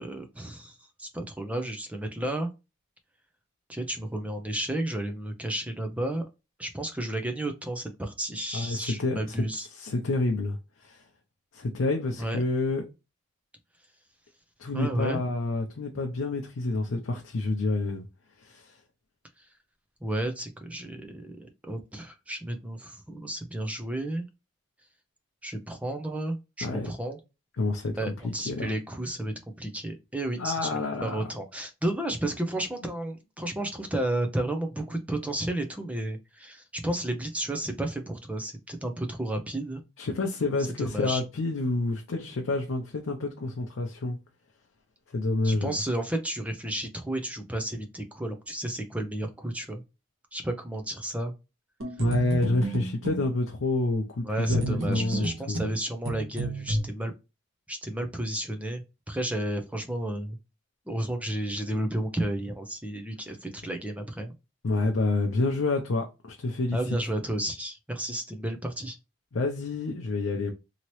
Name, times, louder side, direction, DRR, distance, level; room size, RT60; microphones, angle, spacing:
voice 1, 0.0-2.5 3.7-6.2 6.6-9.7 12.2-12.4 14.7-15.2 19.4-19.5 20.0-21.4 21.6-24.2 25.4-27.2 28.0-39.8 40.8-41.2 45.4-49.8 50.3-51.3 54.2-57.1 57.7-60.4 60.9-64.4 66.7-69.0, right 1 dB, 5° right, 0.5 m, -32 dB
voice 2, 8.5-9.2 9.7-10.6 10.8-11.0 11.5-12.8 14.6-18.1 18.4-18.7 26.6-26.9 27.6-28.7 30.4-31.2 40.0-44.2 45.1-45.8 52.0-55.7 64.6-67.0 69.3-70.5, left 2 dB, 90° left, 0.5 m, -28 dB
sound 1, 51.8-53.3 54.5-56.8, right 1 dB, 90° right, 1.3 m, -31 dB
2.9 x 2.8 x 3.0 m
head